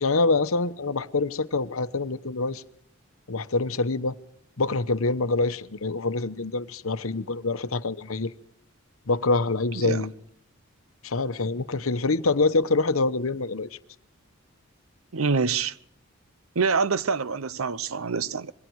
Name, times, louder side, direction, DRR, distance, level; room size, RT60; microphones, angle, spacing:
voice 1, 0.0-2.6 3.3-4.2 4.6-8.3 9.1-10.1 11.0-13.7, left 3 dB, 75° left, 1.0 m, -25 dB
voice 2, 9.7-10.1 15.1-15.8 16.5-18.5, right 5 dB, 75° right, 0.8 m, -26 dB
27.0 x 22.5 x 4.8 m
head